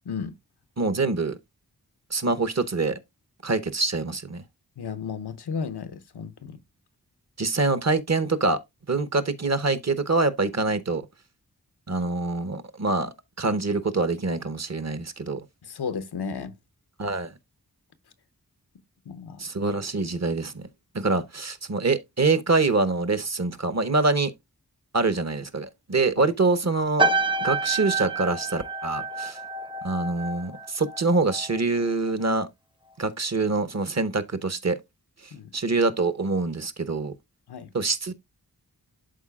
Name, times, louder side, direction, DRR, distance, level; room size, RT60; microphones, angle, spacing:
voice 1, 0.1-0.4 4.8-6.6 15.6-16.5 19.1-19.4 26.2-26.3 35.3-35.5 37.5-37.7, left 6 dB, 85° left, 0.7 m, -33 dB
voice 2, 0.8-1.4 2.1-3.0 3.4-4.4 7.4-8.6 8.9-11.1 11.9-15.5 17.0-17.3 19.4-20.7 20.9-24.3 24.9-27.0 27.4-29.4 29.8-32.5 33.0-34.8 35.5-37.1 37.7-38.1, right 3 dB, 45° right, 0.9 m, -25 dB
sound 1, 27.0-31.6 31.9-32.3, right 3 dB, 15° right, 0.6 m, -28 dB
11.5 x 4.1 x 2.3 m
cardioid pair, 40°, 39 cm